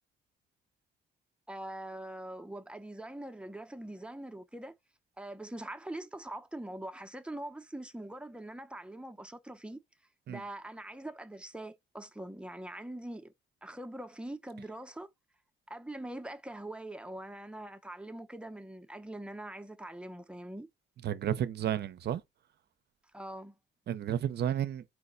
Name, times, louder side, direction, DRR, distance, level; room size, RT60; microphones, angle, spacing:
voice 1, 1.5-4.7 5.2-9.8 10.3-13.3 13.6-15.1 15.7-20.7 23.1-23.5, right 1 dB, 5° right, 0.6 m, -43 dB
voice 2, 21.0-22.2 23.9-24.8, right 10 dB, 55° right, 0.6 m, -32 dB
4.8 x 2.1 x 3.8 m
cardioid pair, 90°, 20 cm